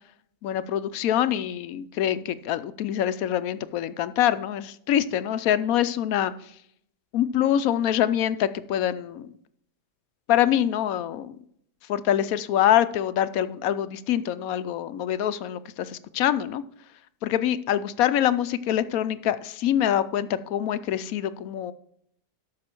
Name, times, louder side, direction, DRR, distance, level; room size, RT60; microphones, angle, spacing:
voice 1, 0.4-6.3 7.1-9.3 10.3-11.4 11.9-16.6 17.2-21.7, left 11 dB, 70° left, 13 dB, 0.9 m, -25 dB
12.5 x 6.2 x 4.4 m, 0.69 s
omnidirectional pair, 1.8 m